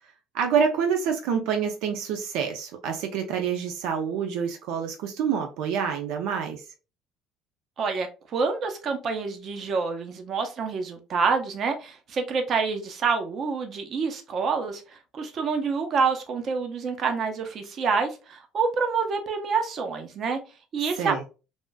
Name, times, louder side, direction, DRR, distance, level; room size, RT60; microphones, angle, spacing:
voice 1, 0.3-6.6 20.9-21.3, right 7 dB, 80° right, 0.5 m, -27 dB
voice 2, 8.3-20.4 20.7-21.1, right 5 dB, 45° right, 0.7 m, -27 dB
3.4 x 2.5 x 2.3 m
cardioid pair, 120°, 0 cm